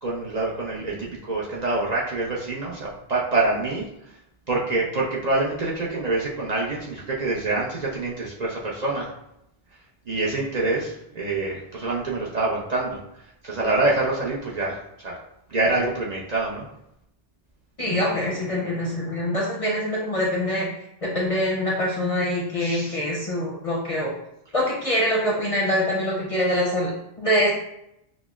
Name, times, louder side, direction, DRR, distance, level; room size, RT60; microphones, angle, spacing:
voice 1, 0.0-4.2 4.5-9.1 10.1-13.0 13.4-15.2 15.5-16.7 22.6-23.0, right 2 dB, 50° right, -4 dB, 0.6 m, -26 dB
voice 2, 17.8-20.7 21.0-24.1 24.5-27.5, left 1 dB, 40° left, -3 dB, 0.6 m, -24 dB
6.0 x 2.0 x 2.3 m, 0.81 s
omnidirectional pair, 1.1 m